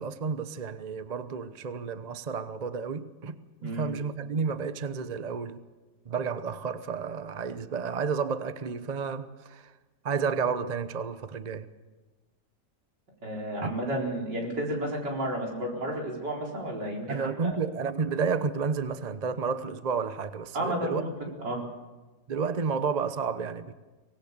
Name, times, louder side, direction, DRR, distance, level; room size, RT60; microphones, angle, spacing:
voice 1, 0.0-3.4 3.6-5.6 6.1-9.7 10.0-11.7 13.6-13.7 17.1-21.1 22.3-23.7, right 5 dB, 35° right, 0.7 m, -31 dB
voice 2, 3.6-4.0 13.2-17.6 20.5-21.1 21.4-21.6, right 1 dB, 80° right, 5.0 m, -32 dB
24.5 x 19.0 x 6.8 m
omnidirectional pair, 1.8 m